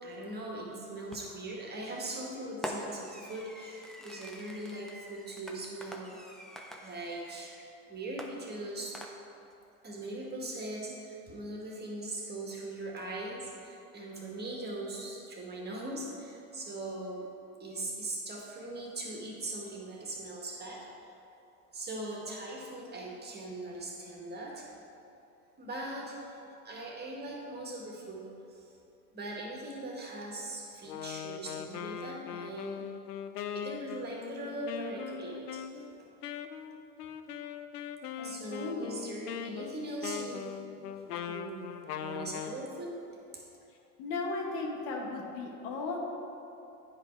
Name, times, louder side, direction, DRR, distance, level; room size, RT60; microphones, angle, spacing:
voice 1, 0.0-6.2 6.8-7.5 7.9-9.0 9.8-17.3 17.6-21.1 21.7-24.7 25.6-28.2 28.5-28.7 29.1-32.9 33.5-35.6 38.2-40.6 41.1-41.8 42.0-43.0 43.3-43.4, right 2 dB, 20° right, -2 dB, 1.8 m, -40 dB
Fireworks, 1.1-1.5 2.6-7.7 8.2-9.5, equal, ahead, 0.5 m, -45 dB
Wind instrument woodwind instrument, 30.8-42.6, left 8 dB, 90° left, 0.5 m, -41 dB
voice 2, 38.2-38.9 44.0-46.0, left 3 dB, 60° left, 1 dB, 1.6 m, -36 dB
9.9 x 5.0 x 4.6 m, 2.8 s
hypercardioid pair, 95°, 46 cm